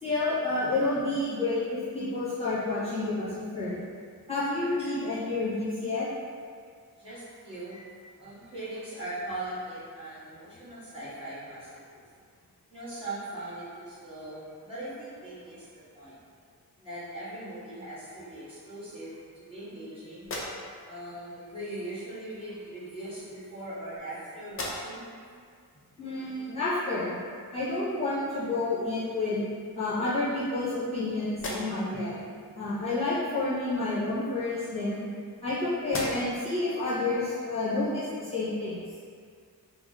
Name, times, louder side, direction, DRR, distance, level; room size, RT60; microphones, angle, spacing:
voice 1, 0.0-3.8 4.3-6.1 26.0-27.1 27.5-29.4 29.7-32.1 32.5-35.1 35.4-38.8, left 2 dB, 15° left, -14 dB, 1.0 m, -29 dB
voice 2, 7.0-12.0 12.7-16.1 16.8-19.1 19.5-20.3 20.9-25.1 32.3-32.7, right 1 dB, 15° right, -14 dB, 1.2 m, -40 dB
sound 1, 20.2-21.0 22.1-22.3 23.2-24.1 24.4-25.2 25.7-25.8 28.4-28.5 29.0-29.7 30.2-31.0 31.3-32.0 34.0-35.5 35.8-36.5, left 1 dB, 35° left, 0.5 m, -40 dB
2.8 x 2.1 x 3.7 m, 2.1 s
wide cardioid pair, 125°, 37 cm